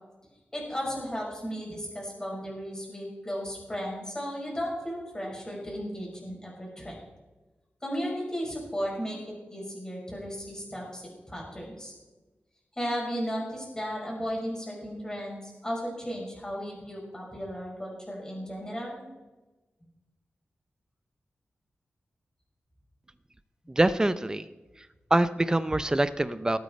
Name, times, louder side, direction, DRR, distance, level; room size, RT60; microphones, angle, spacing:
voice 1, 0.5-6.9 7.8-9.2 9.5-11.9 12.8-19.0, equal, 15° left, -3 dB, 5.3 m, -35 dB
voice 2, 23.7-24.5 25.1-26.6, right 1 dB, 15° right, 14 dB, 0.6 m, -24 dB
19.0 x 8.7 x 4.3 m, 1.1 s
wide cardioid pair, 105°, 4 cm